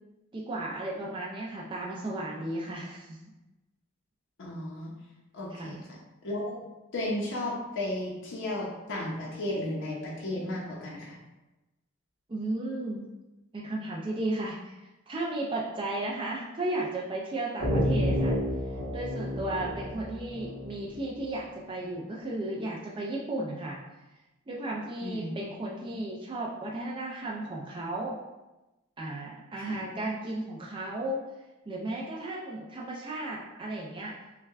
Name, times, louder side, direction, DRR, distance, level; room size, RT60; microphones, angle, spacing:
voice 1, 0.3-3.2 5.5-5.8 12.3-13.1 13.5-14.8 15.1-18.3 18.9-23.8 24.5-28.2 29.0-31.2 31.7-34.2, right 1 dB, 25° right, -4 dB, 0.4 m, -34 dB
voice 2, 4.4-4.9 5.3-5.8 6.2-6.6 6.9-11.2 25.0-25.3 29.6-29.7, left 1 dB, 55° left, -4 dB, 0.7 m, -34 dB
sound 1, 17.6-21.2, equal, 70° right, 1.4 m, -30 dB
5.5 x 2.2 x 2.4 m, 1.0 s
head